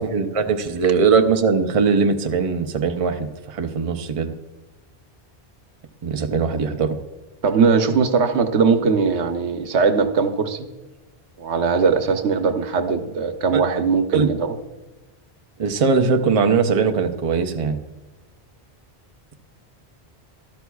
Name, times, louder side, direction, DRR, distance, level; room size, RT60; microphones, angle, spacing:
voice 1, 0.0-4.3 6.0-7.0 13.5-13.6 14.1-14.3 15.6-17.8, right 5 dB, 35° right, 6 dB, 0.7 m, -20 dB
voice 2, 7.4-10.7 11.4-14.6, right 5 dB, 85° right, 8 dB, 1.1 m, -20 dB
13.0 x 12.5 x 2.3 m, 1.2 s
omnidirectional pair, 1.1 m